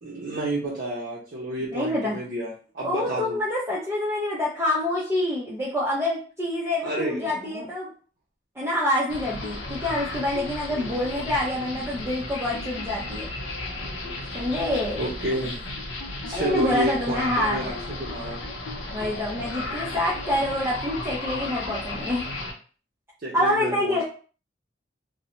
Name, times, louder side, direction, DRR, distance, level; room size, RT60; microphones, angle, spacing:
voice 1, 0.0-3.4 6.8-7.7 10.7-11.0 15.0-15.6 16.3-18.4 23.2-24.0, right 1 dB, 50° right, -6 dB, 0.6 m, -30 dB
voice 2, 1.7-2.2 2.8-7.9 8.6-13.3 14.3-15.1 16.3-17.7 18.9-22.2 23.3-24.0, left 1 dB, 15° right, -8 dB, 0.5 m, -26 dB
sound 1, 9.1-22.5, left 2 dB, 80° left, 0.6 m, -34 dB
2.6 x 2.1 x 3.0 m, 0.40 s
head